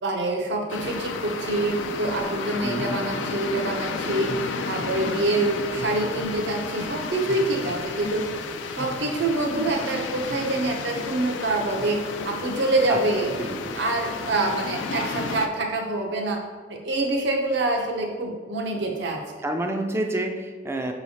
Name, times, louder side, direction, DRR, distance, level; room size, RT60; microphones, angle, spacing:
voice 1, 0.0-4.4 4.7-8.3 8.7-13.3 13.8-16.4 16.7-19.2, right 2 dB, 70° right, 2 dB, 0.7 m, -26 dB
sound 1, 0.7-15.5, left 4 dB, 90° left, 0.4 m, -33 dB
sound 2, 1.8-14.4, left 1 dB, 45° left, 0.6 m, -40 dB
voice 2, 2.6-3.0 12.9-13.0 13.4-13.6 19.4-20.9, right 1 dB, 15° right, 4 dB, 0.3 m, -28 dB
5.5 x 3.0 x 2.8 m, 1.5 s
head